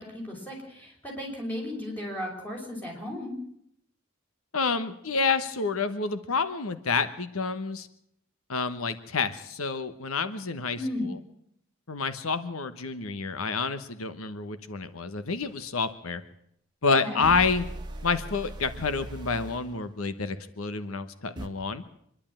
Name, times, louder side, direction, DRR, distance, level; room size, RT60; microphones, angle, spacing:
voice 1, 0.0-3.3 10.8-11.1 17.0-17.2, left 1 dB, 10° left, -2 dB, 6.0 m, -35 dB
voice 2, 4.5-7.9 8.5-10.8 11.1-11.2 11.9-16.2 16.8-17.7 18.0-21.8, left 4 dB, 85° left, 11 dB, 1.2 m, -28 dB
sound 1, 15.4-15.5 17.2-19.7 21.4-21.5, right 1 dB, 20° right, 1.7 m, -39 dB
25.5 x 11.5 x 8.9 m, 0.72 s
head